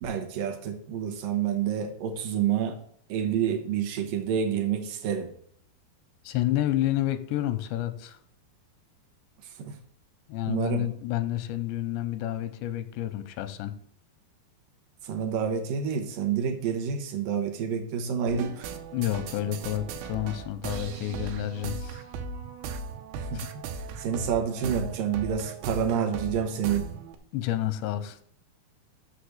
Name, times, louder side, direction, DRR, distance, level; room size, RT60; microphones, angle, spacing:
voice 1, 0.0-2.8 3.1-5.3 9.4-9.8 10.5-10.9 15.0-18.7 23.1-23.5 23.7-26.9, right 7 dB, 70° right, 5 dB, 2.2 m, -28 dB
voice 2, 6.2-8.2 10.3-13.7 18.9-22.0 23.3-23.5 27.3-28.2, left 13 dB, 90° left, 10 dB, 3.0 m, -29 dB
sound 1, 18.3-27.2, right 4 dB, 90° right, 3.1 m, -37 dB
7.2 x 6.7 x 6.6 m, 0.63 s
omnidirectional pair, 5.0 m